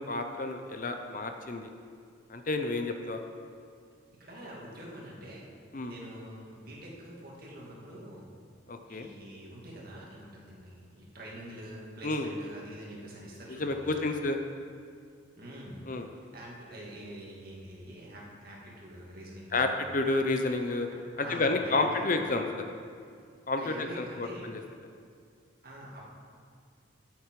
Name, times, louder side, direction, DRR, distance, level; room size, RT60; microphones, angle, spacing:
voice 1, 0.0-1.7 2.3-3.2 5.7-5.9 8.7-9.1 12.0-12.3 13.5-14.4 15.9-16.1 19.5-20.9 21.2-22.4 23.5-24.6, left 2 dB, 45° left, 6 dB, 0.7 m, -30 dB
voice 2, 4.2-5.5 5.8-8.3 8.9-14.1 15.4-15.8 16.2-19.7 20.9-22.2 23.6-24.5 25.6-26.0, right 1 dB, 50° right, -4 dB, 2.4 m, -45 dB
14.0 x 8.3 x 4.8 m, 2.2 s
head